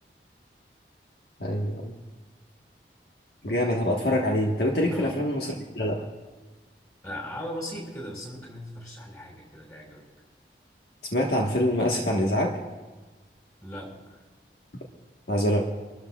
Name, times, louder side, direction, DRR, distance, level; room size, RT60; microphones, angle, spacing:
voice 1, 1.4-1.9 3.4-6.1 11.1-12.5 15.3-15.6, left 1 dB, 65° left, -1 dB, 1.4 m, -25 dB
voice 2, 7.0-10.0 13.6-14.2, equal, 20° left, -1 dB, 5.4 m, -38 dB
27.5 x 13.0 x 2.4 m, 1.3 s
head